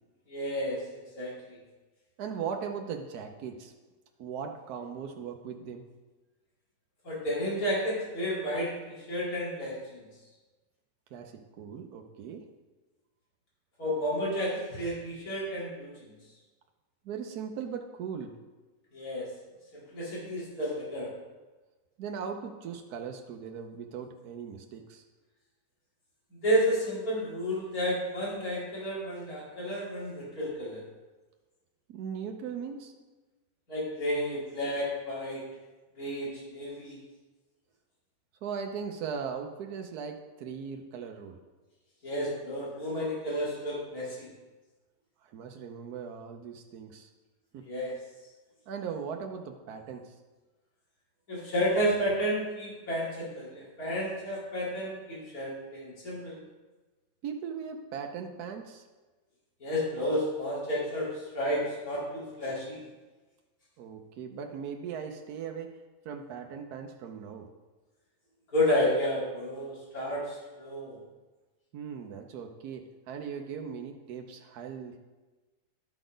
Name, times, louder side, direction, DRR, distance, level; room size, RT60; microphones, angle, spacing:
voice 1, 0.3-0.8 1.1-1.3 7.0-10.0 13.8-15.9 18.9-19.3 19.7-21.1 26.3-30.8 33.7-35.4 36.0-37.0 42.0-44.3 47.6-47.9 51.3-56.4 59.6-62.8 68.5-71.0, equal, 65° left, -7 dB, 3.2 m, -31 dB
voice 2, 2.2-3.7 4.2-5.9 11.1-12.4 17.0-18.4 22.0-25.0 31.9-32.9 38.4-41.4 45.2-47.1 47.5-47.6 48.7-50.1 57.2-58.8 63.8-65.7 66.0-67.5 71.7-75.0, right 6 dB, 75° right, 4 dB, 1.2 m, -39 dB
12.0 x 4.0 x 5.0 m, 1.2 s
omnidirectional pair, 1.7 m